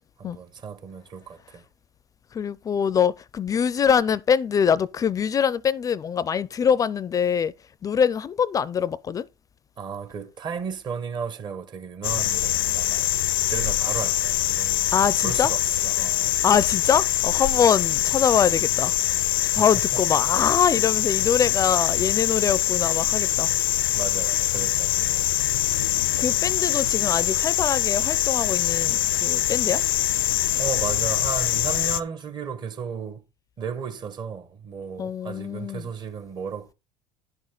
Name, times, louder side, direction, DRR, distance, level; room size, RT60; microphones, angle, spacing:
voice 1, 0.2-1.6 9.8-13.1 13.5-14.9 15.2-16.4 19.4-20.0 23.9-25.4 30.6-33.2 33.6-36.7, right 6 dB, 40° right, 1.5 m, -34 dB
voice 2, 2.3-7.5 7.8-9.3 14.9-15.5 16.4-18.9 19.5-23.5 26.2-29.8 35.0-35.8, left 7 dB, 30° left, 0.5 m, -23 dB
sound 1, 12.0-32.0, left 14 dB, 90° left, 0.5 m, -24 dB
10.5 x 6.3 x 3.8 m
hypercardioid pair, 80°, 11 cm